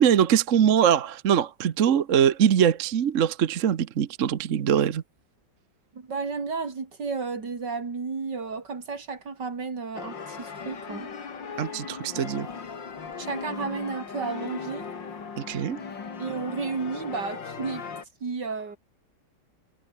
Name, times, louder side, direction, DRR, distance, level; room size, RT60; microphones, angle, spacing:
voice 1, 0.0-5.0 11.6-12.5 15.4-15.8, right 9 dB, 50° right, 1.2 m, -22 dB
voice 2, 5.9-11.1 13.2-14.9 16.2-17.8 18.2-18.8, right 4 dB, 70° right, 3.7 m, -32 dB
sound 1, 9.9-18.0, left 5 dB, 85° left, 3.2 m, -38 dB
omnidirectional pair, 1.9 m